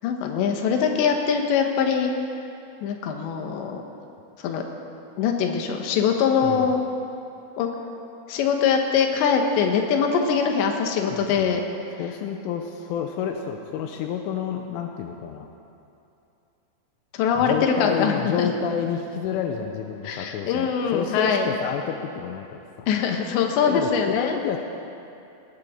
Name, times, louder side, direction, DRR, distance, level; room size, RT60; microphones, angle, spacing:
voice 1, 0.0-2.1 2.8-3.8 4.4-4.6 5.2-6.8 7.6-7.7 8.3-11.6 17.1-18.5 20.0-21.5 22.9-24.4, left 6 dB, 70° left, 3 dB, 3.3 m, -22 dB
voice 2, 11.1-11.6 12.0-15.5 17.4-22.9 23.7-24.6, left 8 dB, 85° left, 3 dB, 3.2 m, -30 dB
19.5 x 19.0 x 3.8 m, 2.7 s
omnidirectional pair, 5.8 m